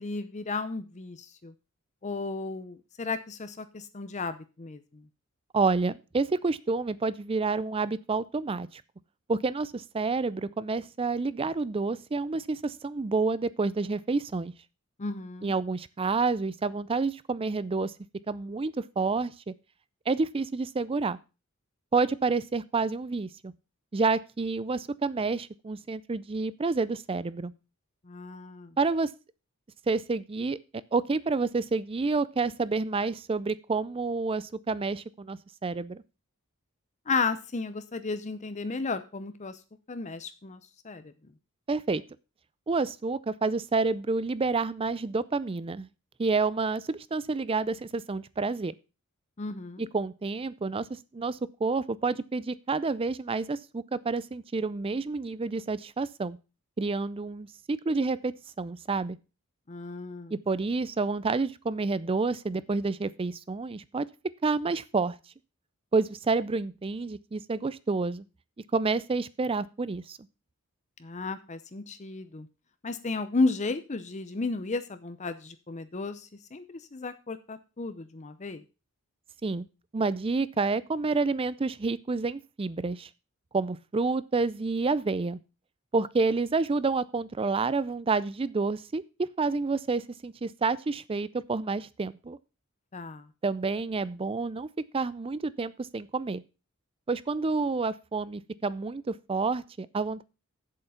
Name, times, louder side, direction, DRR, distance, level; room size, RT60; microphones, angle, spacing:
voice 1, 0.0-1.5 2.0-5.1 15.0-15.5 28.0-28.8 37.1-39.6 39.9-41.1 49.4-49.9 59.7-60.3 71.0-72.5 72.8-78.6 92.9-93.3, left 3 dB, 30° left, 11 dB, 0.6 m, -33 dB
voice 2, 5.5-8.8 9.3-14.5 15.4-17.9 18.3-19.5 20.1-21.2 21.9-23.5 23.9-27.5 28.8-29.1 29.9-30.6 30.9-36.0 41.7-42.0 42.7-45.9 46.2-48.7 49.8-50.9 51.1-56.4 56.8-59.2 60.3-64.1 64.4-65.2 65.9-68.2 68.7-70.2 79.4-79.7 79.9-83.1 83.5-85.4 85.9-92.4 93.4-96.4 97.1-100.2, right 4 dB, 25° right, 18 dB, 0.4 m, -29 dB
8.0 x 7.6 x 5.7 m, 0.31 s
head